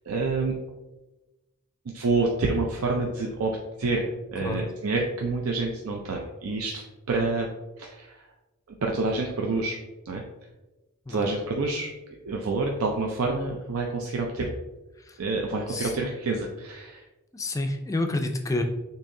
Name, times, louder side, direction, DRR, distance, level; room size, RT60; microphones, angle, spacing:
voice 1, 0.1-0.5 1.9-3.5 3.8-6.8 7.1-7.5 7.8-8.2 8.8-9.8 10.1-10.2 11.1-11.9 12.3-14.5 15.2-17.0, right 3 dB, 70° right, 0 dB, 0.5 m, -27 dB
voice 2, 17.3-18.6, left 2 dB, 15° left, 5 dB, 0.3 m, -29 dB
6.8 x 2.8 x 2.6 m, 1.1 s
head